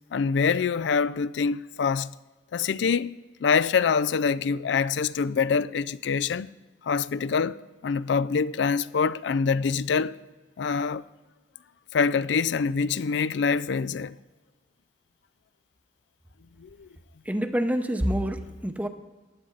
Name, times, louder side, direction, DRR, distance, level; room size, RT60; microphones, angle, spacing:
voice 1, 0.1-2.1 2.5-6.5 6.8-10.2 10.6-11.0 11.9-14.1 16.6-16.9, left 5 dB, 70° left, 0.4 m, -25 dB
voice 2, 17.3-18.9, equal, 10° right, 0.7 m, -27 dB
15.5 x 11.0 x 3.9 m
head